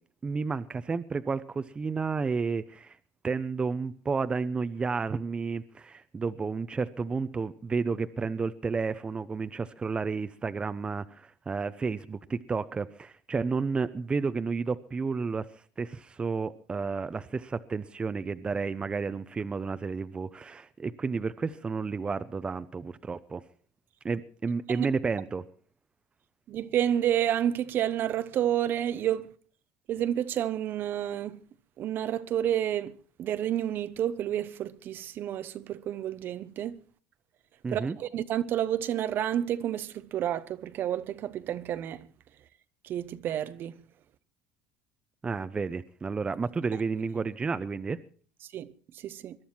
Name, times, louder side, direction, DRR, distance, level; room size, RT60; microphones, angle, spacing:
voice 1, 0.2-3.0 3.2-15.4 15.8-23.4 24.0-25.4 37.6-38.0 45.2-48.0, right 4 dB, 20° right, 0.8 m, -31 dB
voice 2, 26.5-29.3 29.9-31.4 31.8-36.8 37.7-42.1 42.8-43.7 48.5-49.4, right 11 dB, 50° right, 0.9 m, -30 dB
21.5 x 11.5 x 4.5 m
supercardioid pair, 105°, 5 cm